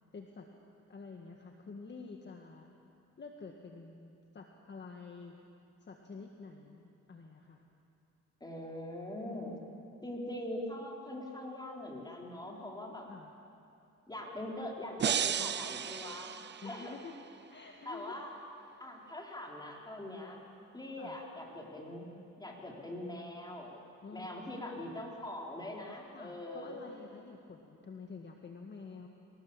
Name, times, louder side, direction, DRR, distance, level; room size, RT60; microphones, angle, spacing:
voice 1, 0.1-0.5 0.9-2.7 3.2-5.4 5.8-7.6 9.2-9.9 13.1-13.3 16.6-17.1 17.5-18.2 18.7-18.8 21.0-21.2 24.0-25.0 26.1-29.1, left 4 dB, 35° left, 2 dB, 1.8 m, -49 dB
voice 2, 8.4-9.5 10.0-13.1 14.1-16.4 16.6-17.0 17.8-18.3 18.8-20.4 20.7-22.1 22.4-23.8 24.1-26.8, left 1 dB, 15° left, -1 dB, 4.6 m, -42 dB
sound 1, 15.0-17.1, right 8 dB, 35° right, 0.6 m, -34 dB
26.0 x 18.5 x 7.4 m, 2.6 s
cardioid pair, 90°, 30 cm